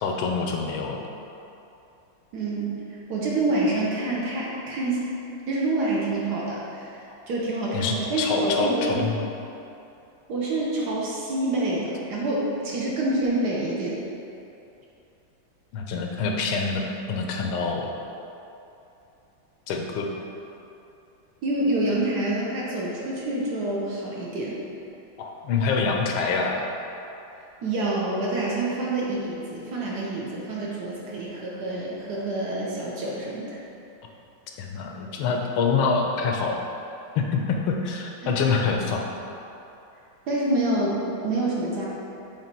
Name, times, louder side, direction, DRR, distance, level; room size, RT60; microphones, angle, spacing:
voice 1, 0.0-1.0 7.7-9.2 15.7-17.9 19.7-20.1 25.2-26.6 34.6-36.6 37.1-39.1, left 4 dB, 85° left, 1 dB, 1.5 m, -26 dB
voice 2, 2.3-5.1 5.5-9.1 10.3-14.0 21.4-24.6 27.6-33.6 38.2-38.4 40.3-41.0 41.2-41.9, right 2 dB, 60° right, -4 dB, 1.2 m, -27 dB
6.8 x 3.1 x 4.4 m, 2.8 s
omnidirectional pair, 2.2 m